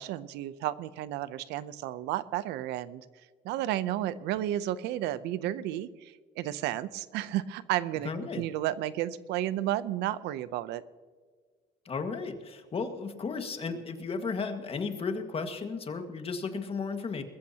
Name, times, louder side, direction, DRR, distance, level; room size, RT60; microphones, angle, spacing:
voice 1, 0.0-3.0 3.4-8.1 8.4-10.8, right 13 dB, 90° right, 15 dB, 0.7 m, -32 dB
voice 2, 8.0-8.4 11.9-17.2, left 4 dB, 35° left, 6 dB, 1.8 m, -34 dB
21.0 x 14.0 x 2.9 m, 1.5 s
cardioid pair, 110°, 17 cm